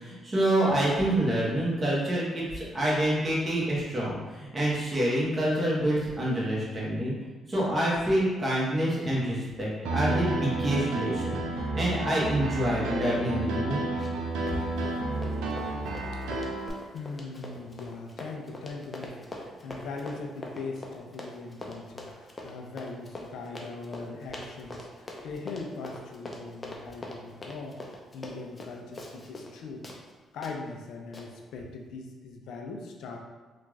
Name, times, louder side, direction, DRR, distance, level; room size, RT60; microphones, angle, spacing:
voice 1, 0.0-7.1 7.5-13.8, right 1 dB, 30° right, -6 dB, 1.3 m, -27 dB
Piano, 9.8-16.7, right 2 dB, 85° right, 0.4 m, -31 dB
Run, 14.0-14.2 14.5-29.6 29.8-30.0 30.4-30.5 31.1-31.3, left 2 dB, 25° left, 0.6 m, -42 dB
voice 2, 16.7-29.9 30.3-33.2, left 3 dB, 80° left, 1 dB, 0.4 m, -40 dB
3.4 x 2.4 x 3.1 m, 1.3 s
cardioid pair, 90°, 0 cm